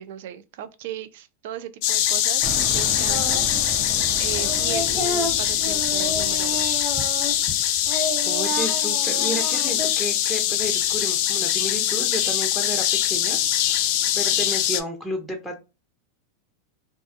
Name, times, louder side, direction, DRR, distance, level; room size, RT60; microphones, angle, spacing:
voice 1, 0.0-6.7, right 11 dB, 65° right, 0.4 m, -37 dB
sound 1, 1.8-14.8, left 11 dB, 55° left, 0.4 m, -23 dB
sound 2, 2.4-8.2, right 3 dB, 40° right, 0.7 m, -36 dB
Singing, 3.1-3.7 3.9-7.6 7.8-9.9, equal, 15° right, 1.1 m, -31 dB
voice 2, 8.2-15.6, left 1 dB, ahead, 0.6 m, -32 dB
2.4 x 2.3 x 2.6 m
hypercardioid pair, 115°, 0 cm